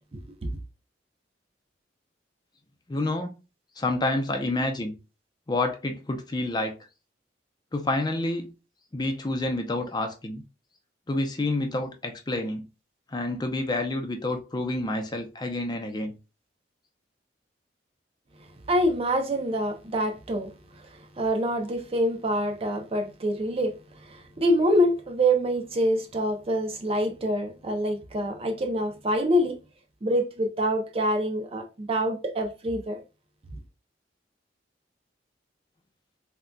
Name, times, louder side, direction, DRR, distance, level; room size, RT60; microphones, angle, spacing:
voice 1, 0.1-0.5 18.7-20.5 21.2-23.8 24.0-29.6 30.0-33.0, equal, 35° right, 0.5 m, -26 dB
voice 2, 2.9-3.3 3.8-4.9 5.5-6.7 7.7-8.5 8.9-10.4 11.1-12.6 13.1-16.1, left 2 dB, 25° left, 0.5 m, -28 dB
3.7 x 2.2 x 2.2 m
head